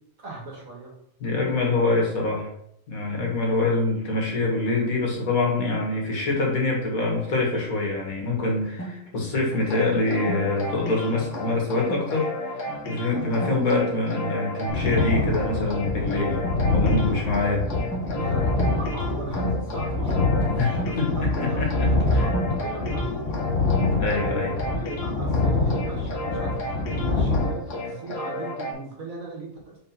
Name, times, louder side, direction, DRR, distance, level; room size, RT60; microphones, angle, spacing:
voice 1, 0.2-0.9 17.1-17.3 18.1-23.0 24.0-29.8, right 3 dB, 75° right, -1 dB, 2.3 m, -38 dB
voice 2, 1.2-2.5 2.9-16.4 16.7-17.6 20.6-20.7 21.0-22.3 24.0-24.5, left 2 dB, 85° left, -1 dB, 2.2 m, -25 dB
sound 1, 8.8-10.6 11.8-12.1 12.5-12.8 13.2-13.6 13.9-14.3 14.8-15.2 16.4-17.1 17.9-19.6 19.9-22.6 23.0-24.5, right 1 dB, 10° left, 1.9 m, -37 dB
sound 2, 9.6-28.7, left 1 dB, 60° left, 1.7 m, -33 dB
sound 3, 14.7-27.4, left 3 dB, 45° left, 2.4 m, -25 dB
4.7 x 4.5 x 5.8 m, 0.73 s
omnidirectional pair, 1.4 m